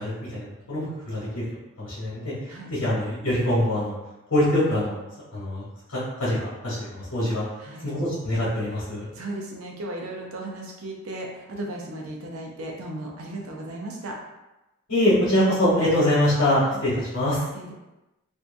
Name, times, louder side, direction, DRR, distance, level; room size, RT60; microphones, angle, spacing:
voice 1, 0.0-1.4 1.8-2.3 2.7-3.9 4.3-5.0 5.3-5.6 5.9-7.4 7.8-9.1 14.9-17.4, left 1 dB, 85° left, -10 dB, 1.1 m, -24 dB
voice 2, 9.1-14.2 16.7-16.8 17.5-17.7, right 1 dB, 75° right, -1 dB, 0.6 m, -36 dB
2.6 x 2.2 x 2.5 m, 0.99 s
head